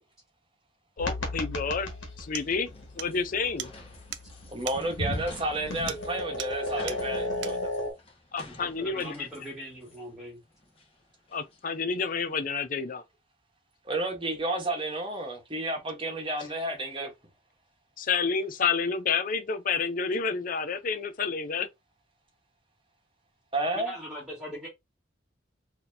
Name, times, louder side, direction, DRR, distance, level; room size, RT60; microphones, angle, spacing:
sound 1, 1.0-7.9, left 2 dB, 80° left, 1.3 m, -35 dB
voice 1, 1.0-1.9 2.2-2.7 3.0-3.7 6.7-6.8 8.3-9.3 11.3-13.0 14.5-14.6 18.0-21.7, left 5 dB, 45° left, 0.5 m, -29 dB
sound 2, 1.8-12.3, left 3 dB, 30° left, 1.0 m, -52 dB
sound 3, 1.8-1.9 2.3-2.5 3.0-3.1 3.6-3.7 4.1-4.3 4.7-4.8 5.9-6.1 6.4-6.6 6.9-7.0 7.4-7.6, right 11 dB, 70° right, 0.4 m, -38 dB
voice 2, 4.5-7.7 13.8-17.1 23.5-24.0, right 2 dB, 25° right, 1.0 m, -31 dB
voice 3, 8.5-10.4 23.7-24.7, equal, 5° right, 1.2 m, -40 dB
4.1 x 2.8 x 2.6 m
head